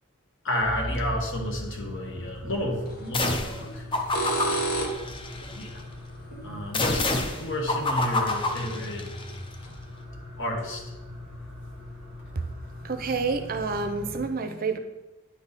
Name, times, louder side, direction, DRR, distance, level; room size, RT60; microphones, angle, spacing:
voice 1, 0.4-3.9 4.7-5.8 6.4-9.1 10.4-10.9, left 1 dB, 60° left, 1 dB, 1.4 m, -31 dB
sound 1, 0.6-14.2, left 1 dB, 80° left, 2.2 m, -40 dB
sound 2, 2.9-3.1 3.9-5.2 7.8-7.9 8.7-8.8 9.2-9.3 9.6-9.7, right 2 dB, 45° left, 1.0 m, -29 dB
sound 3, 3.1-3.6 3.9-5.7 6.7-9.3, left 2 dB, 25° left, 0.6 m, -28 dB
voice 2, 12.8-14.8, right 4 dB, 45° right, 7 dB, 0.6 m, -28 dB
10.0 x 3.5 x 4.1 m, 1.1 s
head